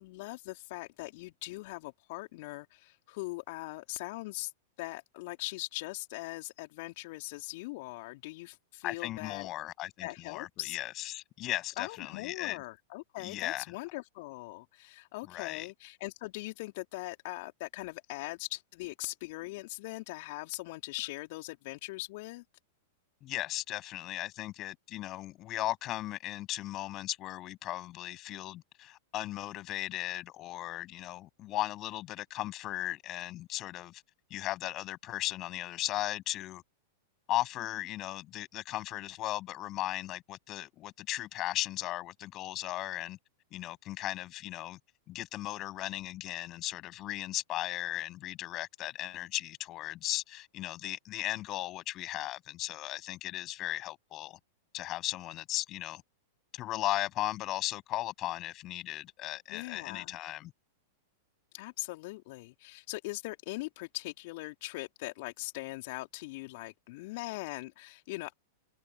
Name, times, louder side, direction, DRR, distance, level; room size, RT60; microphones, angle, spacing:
voice 1, 0.0-4.5 4.8-9.5 10.0-10.8 11.8-22.4 59.5-60.1 61.5-68.4, left 22 dB, 55° left, 2.9 m, -41 dB
voice 2, 8.8-12.6 13.2-13.6 15.3-15.7 23.2-34.0 34.3-36.6 37.3-43.2 43.5-44.8 45.1-54.4 54.7-56.0 56.5-60.5, left 15 dB, 35° left, 6.7 m, -37 dB
figure-of-eight pair, 100°, 0 cm